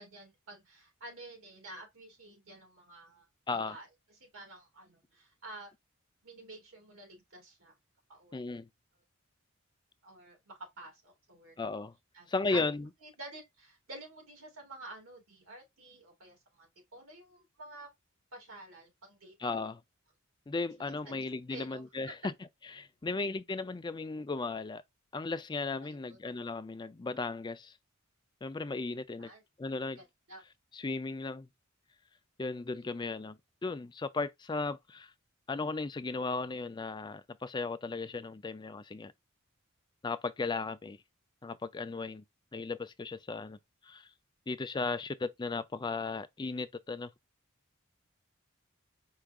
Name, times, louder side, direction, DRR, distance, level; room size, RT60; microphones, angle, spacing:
voice 1, 0.0-3.9 4.1-5.7 6.2-7.7 8.1-8.4 10.0-11.6 12.1-12.6 13.0-17.9 18.3-19.7 20.8-21.1 21.5-21.8 25.8-26.2 29.2-29.4 30.0-30.4, right 2 dB, 75° right, 2.2 m, -50 dB
voice 2, 8.3-8.7 11.6-11.9 12.3-12.9 19.4-19.8 20.5-22.2 22.8-24.8 25.1-27.7 28.4-29.3 29.6-30.0 30.7-31.5 32.4-35.1 35.5-39.1 40.0-41.0 41.4-42.2 42.5-43.6 43.8-44.1 44.5-47.1, left 3 dB, 20° left, 0.4 m, -36 dB
4.7 x 2.4 x 3.5 m
head